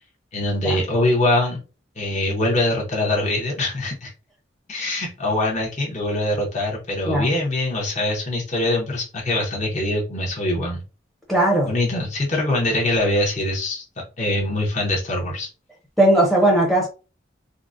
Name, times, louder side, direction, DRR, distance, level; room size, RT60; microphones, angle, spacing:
voice 1, 0.3-1.6 2.0-4.1 4.7-10.8 11.6-15.5, left 1 dB, 40° left, 0.7 m, -23 dB
voice 2, 11.3-11.7 16.0-16.9, right 1 dB, ahead, 0.6 m, -17 dB
3.7 x 2.1 x 2.5 m
head